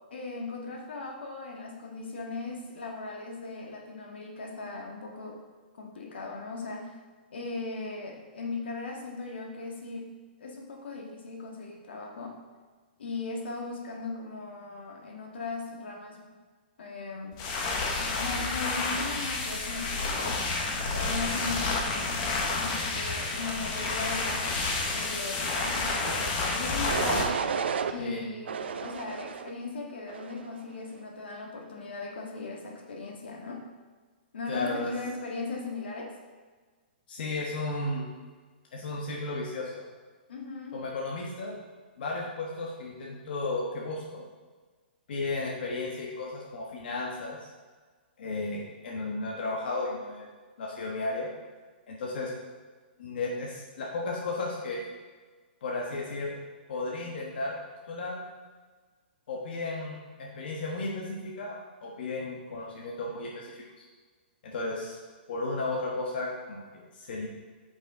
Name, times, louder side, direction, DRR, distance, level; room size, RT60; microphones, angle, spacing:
voice 1, 0.1-5.4 5.8-7.0 7.3-12.3 13.0-16.3 16.8-17.4 17.7-20.4 20.9-27.4 27.9-33.6 34.3-36.1 40.3-40.8, left 3 dB, 85° left, 0 dB, 1.8 m, -38 dB
sound 1, 17.3-27.2, left 3 dB, 30° left, 1.1 m, -30 dB
sound 2, 25.9-26.3 26.9-27.9 28.5-29.5 30.1-30.5, right 6 dB, 85° right, 0.6 m, -32 dB
voice 2, 34.5-34.9 37.1-38.1 38.7-39.9 40.7-41.5 42.0-44.2 45.1-47.5 48.2-50.3 50.6-51.3 51.9-52.3 53.0-54.8 55.6-56.4 56.7-57.6 57.9-58.2 59.3-63.8 64.4-65.0 65.3-67.3, left 2 dB, 60° left, -2 dB, 1.3 m, -34 dB
8.8 x 5.5 x 3.8 m, 1.4 s
hypercardioid pair, 160°, 6 cm